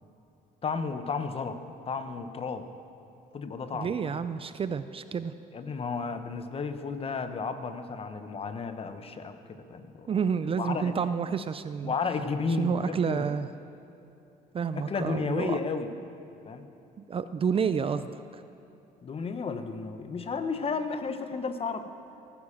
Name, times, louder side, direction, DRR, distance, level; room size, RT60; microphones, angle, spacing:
voice 1, 0.6-1.6 1.9-2.7 3.3-4.2 5.5-10.2 10.6-10.9 11.8-13.3 14.9-15.9 16.5-16.6 19.0-21.9, left 4 dB, 35° left, 9 dB, 1.1 m, -33 dB
voice 2, 3.7-5.3 10.1-11.9 12.6-13.5 14.5-15.6 17.0-18.4, right 6 dB, 35° right, 12 dB, 0.5 m, -29 dB
17.0 x 10.0 x 7.3 m, 2.9 s
cardioid pair, 110°, 17 cm